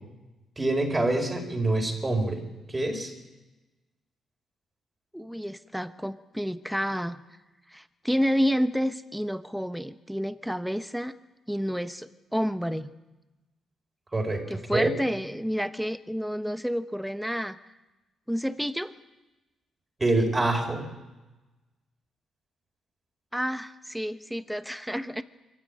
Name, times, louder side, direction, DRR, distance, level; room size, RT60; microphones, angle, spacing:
voice 1, 0.6-2.4 2.7-3.1 14.1-14.9 20.0-20.9, right 2 dB, 20° right, 2 dB, 4.7 m, -26 dB
voice 2, 5.1-7.2 7.7-11.1 11.5-12.9 14.5-17.6 18.3-18.9 23.3-25.2, equal, ahead, 10 dB, 1.0 m, -29 dB
23.5 x 15.0 x 8.8 m, 1.1 s
cardioid pair, 105°, 0 cm